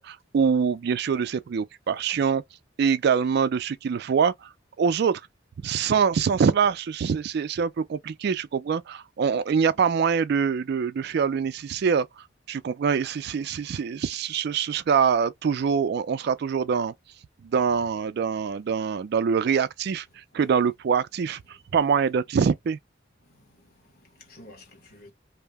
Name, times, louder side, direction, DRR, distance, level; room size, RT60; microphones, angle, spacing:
voice 1, 0.0-2.4 2.8-4.5 4.8-5.2 5.6-16.9 17.4-22.8, right 6 dB, 55° right, 0.3 m, -24 dB
voice 2, 20.1-20.5 21.5-21.6 23.2-25.1, left 1 dB, 55° left, 1.2 m, -52 dB
2.7 x 2.0 x 3.3 m
head